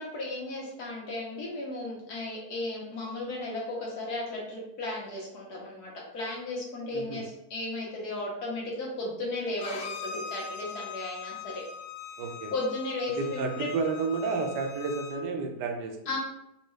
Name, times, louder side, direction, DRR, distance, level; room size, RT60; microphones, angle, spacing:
voice 1, 0.0-11.6 12.5-13.7 16.1-16.2, left 2 dB, 65° left, -3 dB, 1.5 m, -35 dB
voice 2, 6.9-7.2 12.2-12.5 13.2-16.2, right 4 dB, 80° right, 3 dB, 1.2 m, -31 dB
Bowed string instrument, 9.6-15.2, left 6 dB, 80° left, 1.2 m, -41 dB
4.3 x 2.3 x 3.1 m, 0.80 s
omnidirectional pair, 1.8 m